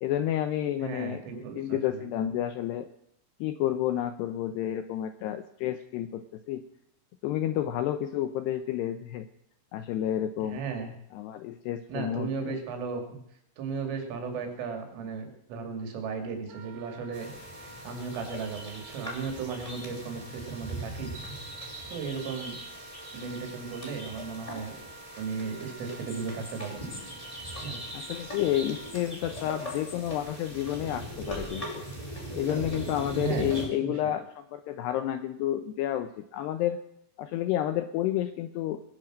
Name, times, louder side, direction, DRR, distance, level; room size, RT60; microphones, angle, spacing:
voice 1, 0.0-2.9 3.4-6.6 7.2-9.3 9.7-10.6 11.1-12.6 27.9-31.8 32.3-36.8 37.2-38.8, left 12 dB, 85° left, 9 dB, 2.4 m, -30 dB
voice 2, 0.8-2.3 10.4-10.9 11.9-13.2 13.6-17.3 17.8-21.1 21.9-22.6 23.1-24.8 25.2-26.8 27.6-27.8 33.1-34.1, right 5 dB, 80° right, 5 dB, 5.2 m, -35 dB
Wind instrument woodwind instrument, 16.5-28.9, right 3 dB, 60° right, 1.7 m, -49 dB
sound 1, 17.1-33.7, equal, 5° left, 5.1 m, -40 dB
20.0 x 10.5 x 6.4 m, 0.74 s
omnidirectional pair, 5.7 m